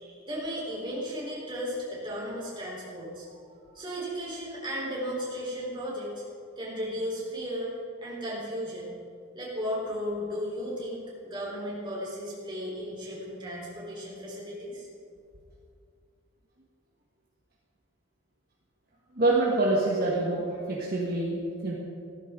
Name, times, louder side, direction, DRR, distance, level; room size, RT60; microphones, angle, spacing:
voice 1, 0.3-3.3 3.7-6.2 6.6-7.7 8.0-8.9 9.3-14.9, equal, 20° right, -5 dB, 4.0 m, -35 dB
voice 2, 19.1-21.7, right 2 dB, 45° right, -4 dB, 1.6 m, -26 dB
16.0 x 13.5 x 3.8 m, 2.4 s
head